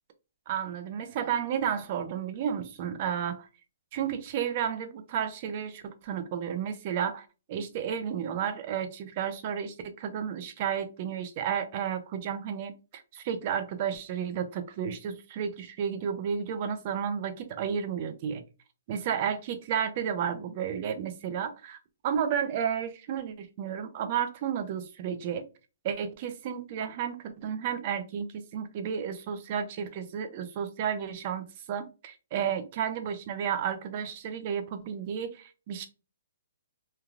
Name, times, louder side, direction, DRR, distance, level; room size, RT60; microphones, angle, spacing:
voice 1, 0.5-3.5 3.9-18.4 18.9-21.8 22.0-25.5 25.8-35.9, right 8 dB, 40° right, 0.5 m, -32 dB
3.2 x 2.2 x 2.3 m
hypercardioid pair, 150°, 0 cm